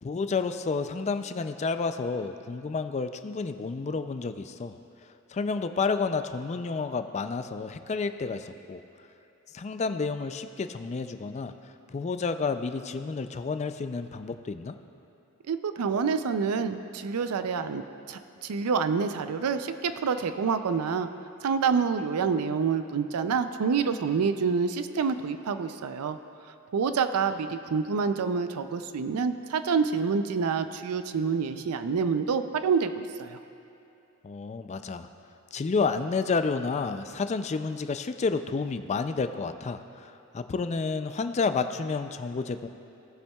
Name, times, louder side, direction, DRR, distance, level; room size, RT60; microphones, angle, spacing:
voice 1, 0.0-4.8 5.3-8.8 9.5-11.5 11.9-14.7 34.2-35.1 35.5-42.7, left 4 dB, 30° left, 9 dB, 0.3 m, -30 dB
voice 2, 15.5-21.1 21.4-26.2 26.7-33.4, right 5 dB, 90° right, 10 dB, 0.4 m, -27 dB
18.0 x 7.1 x 2.3 m, 2.8 s
head